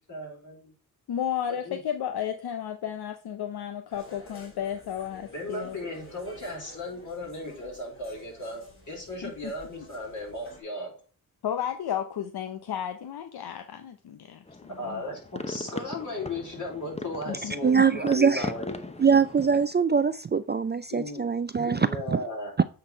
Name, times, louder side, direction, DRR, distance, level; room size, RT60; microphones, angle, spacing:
voice 1, 0.1-0.7 1.5-1.8 5.3-10.9 14.8-18.7 20.9-21.2 21.6-22.5, left 2 dB, 50° left, 4.4 m, -36 dB
voice 2, 1.1-5.8 9.2-9.5 11.4-15.0 17.3-17.5, left 9 dB, 75° left, 0.7 m, -33 dB
sound 1, 3.9-10.6, left 1 dB, 35° left, 2.9 m, -50 dB
sound 2, 14.5-19.7, left 2 dB, 15° left, 0.8 m, -39 dB
voice 3, 17.6-18.5 19.0-22.2 22.6-22.7, right 6 dB, 30° right, 0.4 m, -23 dB
8.7 x 4.0 x 4.4 m
cardioid pair, 65°, 38 cm